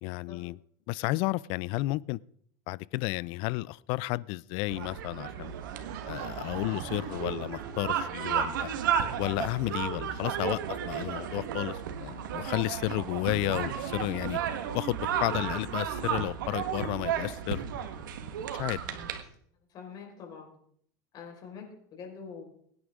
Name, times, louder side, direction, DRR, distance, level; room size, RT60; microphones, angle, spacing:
voice 1, 0.0-0.6 0.9-2.2 2.7-5.5 6.0-8.7 9.2-14.4 14.7-17.6 18.6-18.8, left 21 dB, 60° left, 0.5 m, -32 dB
sound 1, 4.7-19.2, right 8 dB, 90° right, 1.6 m, -33 dB
Laughter / Crowd, 5.4-8.2, right 11 dB, 65° right, 1.8 m, -44 dB
voice 2, 18.8-19.2 19.7-20.5 21.1-22.4, left 6 dB, 40° left, 5.0 m, -45 dB
23.0 x 9.8 x 3.7 m
supercardioid pair, 125°, 10 cm